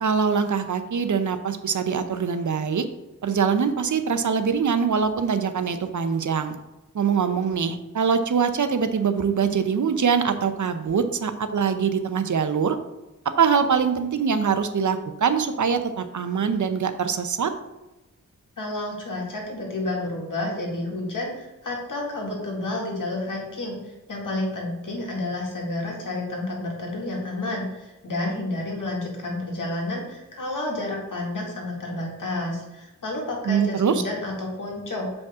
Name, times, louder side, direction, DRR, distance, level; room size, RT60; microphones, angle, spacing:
voice 1, 0.0-2.9 3.2-6.5 6.9-12.8 13.4-17.5 33.4-34.0, right 6 dB, 65° right, 9 dB, 0.7 m, -23 dB
voice 2, 18.6-35.1, left 2 dB, 70° left, -2 dB, 2.1 m, -30 dB
7.2 x 5.2 x 3.6 m, 1.0 s
wide cardioid pair, 85°, 33 cm